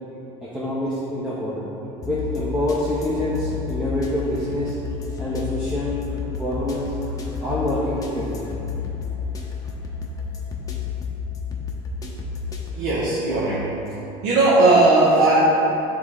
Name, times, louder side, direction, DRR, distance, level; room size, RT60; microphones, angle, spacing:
voice 1, 0.4-1.6 2.1-4.8 5.2-6.0 6.3-6.9 7.4-8.4, left 1 dB, 10° right, -9 dB, 1.0 m, -26 dB
sound 1, 2.0-12.7, left 6 dB, 25° left, 0.9 m, -31 dB
voice 2, 12.7-13.7 14.2-15.4, right 2 dB, 85° right, -8 dB, 1.1 m, -17 dB
9.2 x 3.8 x 3.6 m, 3.0 s
supercardioid pair, 120°, 15 cm